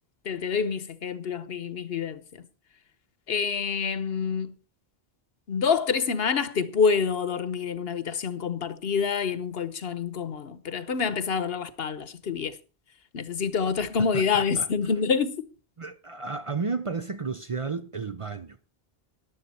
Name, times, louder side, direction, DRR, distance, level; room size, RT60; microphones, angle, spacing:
voice 1, 0.2-2.2 3.3-4.5 5.5-12.6 13.1-15.4, left 6 dB, 70° left, 1.2 m, -27 dB
voice 2, 14.0-14.7 15.8-18.6, right 4 dB, 40° right, 0.6 m, -33 dB
13.5 x 11.5 x 4.2 m
omnidirectional pair, 1.0 m